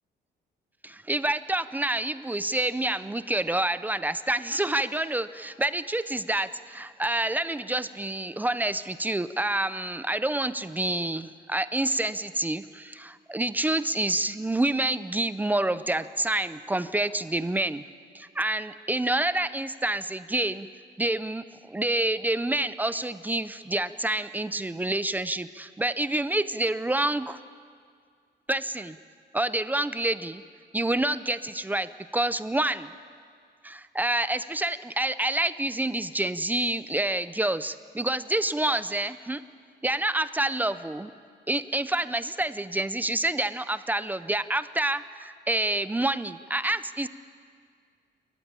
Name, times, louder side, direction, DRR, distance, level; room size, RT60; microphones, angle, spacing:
voice 1, 0.8-17.9 18.1-20.7 21.0-27.4 28.5-29.0 29.3-30.4 30.7-32.9 33.6-39.4 39.8-41.1 41.5-47.1, right 1 dB, 10° right, 13 dB, 0.5 m, -28 dB
28.5 x 14.5 x 8.8 m, 2.1 s
cardioid pair, 160°, 19 cm